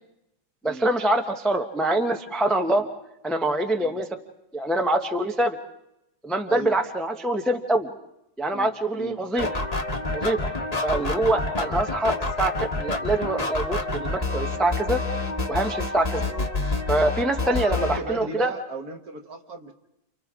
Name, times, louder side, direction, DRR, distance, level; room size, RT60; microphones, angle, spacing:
voice 1, 0.6-2.9 3.2-4.1 4.5-5.6 6.2-7.9 8.4-9.5 10.1-10.4 10.8-15.0 15.5-16.3 16.9-18.5, right 1 dB, ahead, 4 dB, 0.4 m, -24 dB
voice 2, 6.5-6.8 8.5-9.2 17.6-19.7, right 3 dB, 50° right, 4 dB, 1.8 m, -36 dB
sound 1, 9.3-18.0, left 3 dB, 20° left, 1.3 m, -28 dB
30.0 x 29.0 x 3.7 m, 0.84 s
omnidirectional pair, 2.1 m